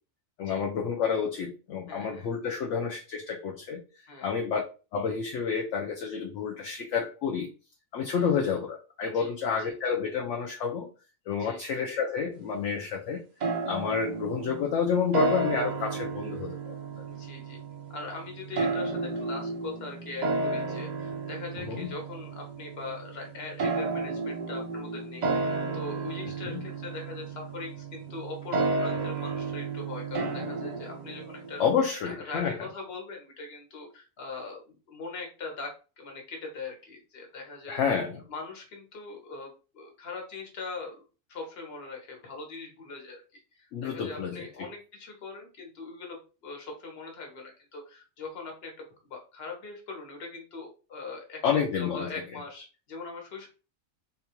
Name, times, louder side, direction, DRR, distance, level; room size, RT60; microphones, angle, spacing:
voice 1, 0.4-3.8 4.2-4.6 4.9-7.5 7.9-10.9 11.3-13.2 13.7-16.8 21.7-21.9 26.5-26.6 31.6-32.5 37.7-38.2 43.7-44.7 51.4-52.1, left 6 dB, 70° left, 0 dB, 0.8 m, -29 dB
voice 2, 1.9-2.3 4.1-4.4 8.1-8.3 9.1-9.7 11.3-11.6 17.1-17.6 17.9-31.6 32.0-37.8 38.3-41.0 41.3-53.5, left 4 dB, 50° left, 1 dB, 1.1 m, -41 dB
sound 1, 13.4-31.9, right 3 dB, 60° right, 0.4 m, -33 dB
3.7 x 2.3 x 2.9 m, 0.34 s
omnidirectional pair, 1.4 m